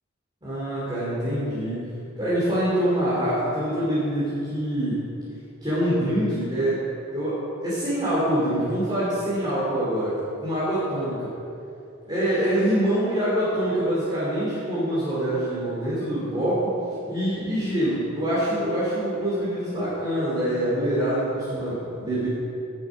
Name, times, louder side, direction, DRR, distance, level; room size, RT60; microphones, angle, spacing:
voice 1, 0.4-1.9 2.2-5.1 5.6-6.8 7.1-11.3 12.0-16.7 17.1-22.3, right 1 dB, 20° right, -10 dB, 2.8 m, -25 dB
11.0 x 8.0 x 5.1 m, 2.6 s
head